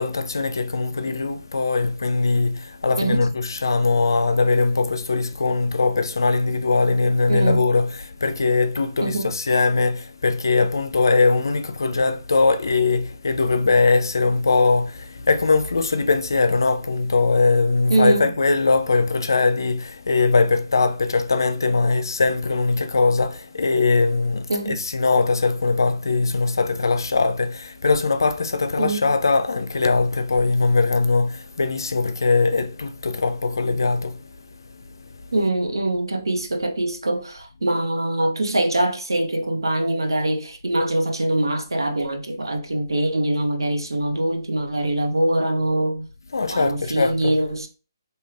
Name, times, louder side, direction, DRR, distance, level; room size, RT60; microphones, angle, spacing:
voice 1, 0.0-34.3 34.9-35.5 46.3-47.4, left 3 dB, 65° left, 0.4 m, -21 dB
voice 2, 3.0-3.3 7.3-7.6 9.0-9.3 17.9-18.3 24.5-24.8 28.8-29.0 35.3-46.1 46.5-47.7, right 1 dB, 75° right, 0.7 m, -23 dB
3.0 x 2.8 x 2.4 m
figure-of-eight pair, 140°, 2 cm